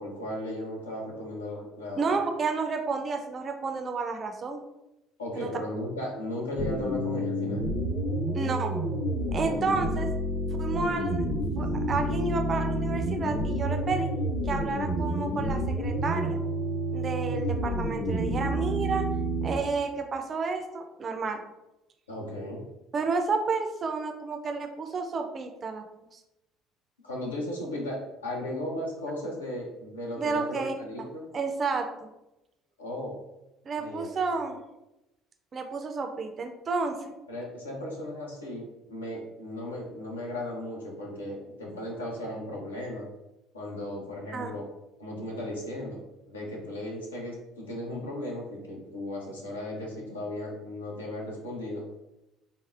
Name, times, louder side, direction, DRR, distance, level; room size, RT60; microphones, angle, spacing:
voice 1, 0.0-2.2 5.2-7.7 9.4-9.8 22.1-22.6 27.0-31.2 32.8-33.2 33.8-34.4 37.3-43.1 43.5-44.6 45.0-46.0 46.3-51.9, left 1 dB, 80° left, -2 dB, 0.6 m, -36 dB
voice 2, 2.0-4.6 5.4-5.5 8.3-8.7 9.3-10.1 10.6-11.2 11.5-14.1 14.5-16.4 16.9-19.1 19.4-21.4 22.9-25.8 26.1-26.2 30.2-30.7 31.3-32.1 33.7-34.6 35.5-37.1 44.3-44.5, right 4 dB, 35° right, 5 dB, 0.3 m, -31 dB
sound 1, 6.6-19.6, right 1 dB, 85° right, 0.6 m, -29 dB
3.6 x 2.0 x 2.3 m, 0.94 s
figure-of-eight pair, 55°, 0 cm